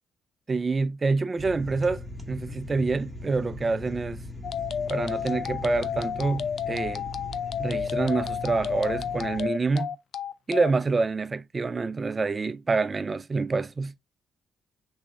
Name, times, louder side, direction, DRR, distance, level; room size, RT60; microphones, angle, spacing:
voice 1, 0.5-4.2 4.9-7.1 7.6-10.0 10.5-13.9, right 4 dB, 30° right, 0.4 m, -27 dB
sound 1, 1.4-9.5, left 2 dB, ahead, 1.0 m, -39 dB
sound 2, 4.4-10.7, left 8 dB, 60° left, 0.4 m, -31 dB
3.5 x 3.2 x 3.6 m
cardioid pair, 90°, 0 cm